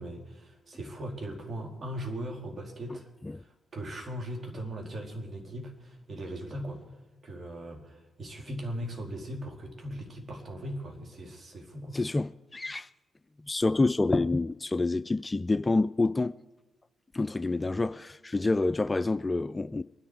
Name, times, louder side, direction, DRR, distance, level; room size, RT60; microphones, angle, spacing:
voice 1, 0.0-3.1 3.3-3.5 3.7-6.8 7.2-12.0, right 1 dB, 45° right, 3.4 m, -39 dB
voice 2, 11.9-12.9 13.5-16.3 17.1-19.8, left 2 dB, 25° left, 0.4 m, -27 dB
23.0 x 10.5 x 4.8 m
hypercardioid pair, 40°, 0 cm